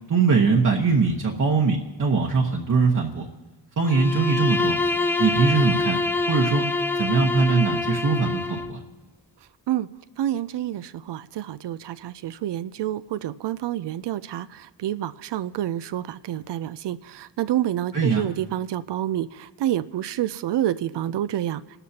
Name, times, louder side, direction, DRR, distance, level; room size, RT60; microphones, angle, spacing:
voice 1, 0.1-3.2 3.8-4.8 5.2-6.0 6.3-6.7 7.0-8.8 17.9-18.2, right 4 dB, 45° right, -2 dB, 1.1 m, -21 dB
Bowed string instrument, 3.8-8.8, left 3 dB, 5° left, 0.5 m, -25 dB
voice 2, 10.2-21.6, right 12 dB, 70° right, 15 dB, 0.5 m, -28 dB
27.5 x 12.5 x 2.8 m, 1.2 s
wide cardioid pair, 115°, 43 cm